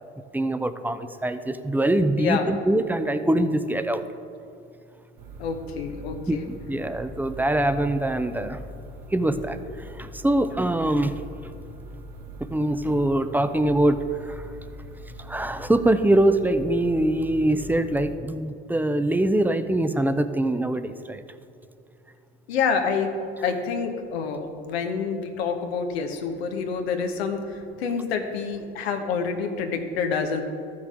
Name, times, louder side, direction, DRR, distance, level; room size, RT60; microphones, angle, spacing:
voice 1, 0.3-4.0 6.3-8.6 9.1-11.1 12.4-14.4 15.3-21.2, right 1 dB, 5° right, 10 dB, 0.5 m, -23 dB
voice 2, 2.2-2.6 5.4-6.5 22.5-23.1 23.4-30.4, left 5 dB, 85° left, 5 dB, 1.0 m, -27 dB
sound 1, 5.2-18.1, equal, 65° right, 1.3 m, -42 dB
14.0 x 6.2 x 3.7 m, 2.6 s
hypercardioid pair, 70°, 30 cm